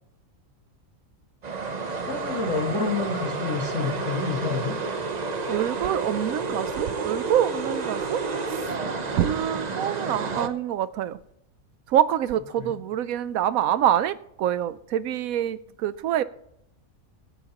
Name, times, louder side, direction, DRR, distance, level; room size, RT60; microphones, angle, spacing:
sound 1, 1.4-10.5, right 4 dB, 35° right, 0.7 m, -30 dB
voice 1, 2.0-4.8 12.6-12.7, left 5 dB, 55° left, 2.2 m, -29 dB
voice 2, 5.5-8.2 9.1-11.2 11.9-16.2, right 11 dB, 80° right, 1.0 m, -25 dB
23.5 x 9.6 x 3.0 m
omnidirectional pair, 1.5 m